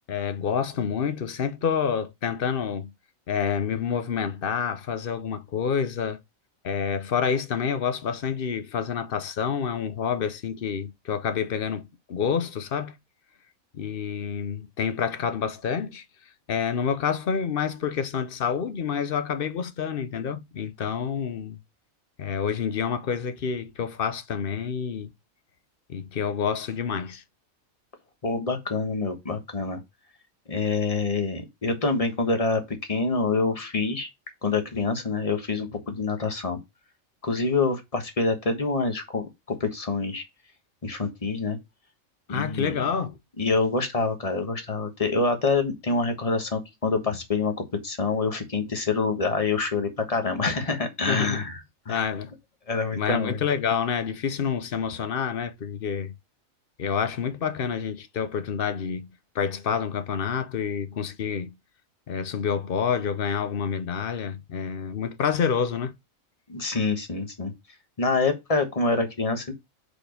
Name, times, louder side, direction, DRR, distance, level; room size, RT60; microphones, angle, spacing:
voice 1, 0.1-2.9 3.3-6.2 6.6-13.0 13.7-16.0 16.5-21.6 22.2-25.1 25.9-27.2 42.3-43.2 51.1-51.5 51.9-52.3 52.9-56.1 56.8-61.6 62.1-65.9, left 7 dB, 50° left, 0.8 m, -28 dB
voice 2, 28.2-29.8 30.5-34.1 34.4-36.6 37.2-40.2 40.8-41.6 42.3-42.7 43.4-47.5 47.8-51.6 51.9-52.0 52.7-53.4 66.5-67.5 68.0-69.5, left 3 dB, 30° left, 1.3 m, -26 dB
4.9 x 4.3 x 5.0 m
omnidirectional pair, 1.4 m